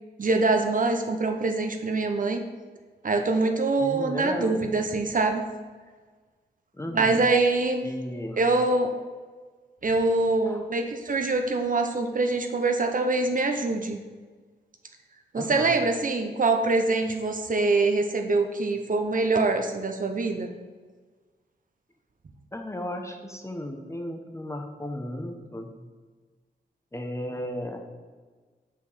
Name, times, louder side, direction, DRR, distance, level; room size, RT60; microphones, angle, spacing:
voice 1, 0.2-2.4 3.0-5.4 6.9-7.8 8.4-8.9 9.8-14.0 15.3-20.5, right 3 dB, 50° right, 5 dB, 0.7 m, -24 dB
voice 2, 3.8-4.6 6.7-7.3 7.8-8.5 10.5-10.7 15.4-15.8 22.5-25.8 26.9-27.8, left 1 dB, 15° left, 4 dB, 0.8 m, -35 dB
6.0 x 4.7 x 4.1 m, 1.4 s
cardioid pair, 50°, 18 cm